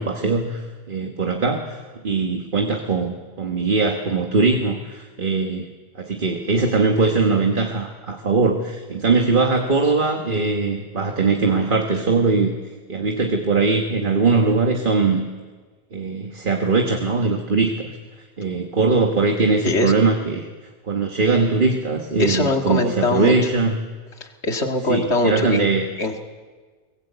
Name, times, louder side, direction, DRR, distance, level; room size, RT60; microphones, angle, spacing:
voice 1, 0.0-5.7 5.9-12.5 12.9-15.2 15.9-17.9 18.4-20.5 20.9-23.8 24.9-25.9, right 3 dB, 50° right, 3 dB, 1.6 m, -21 dB
voice 2, 22.2-23.3 24.2-25.7 26.0-26.2, left 2 dB, 75° left, 4 dB, 2.3 m, -22 dB
23.5 x 20.5 x 8.2 m, 1.4 s
omnidirectional pair, 1.1 m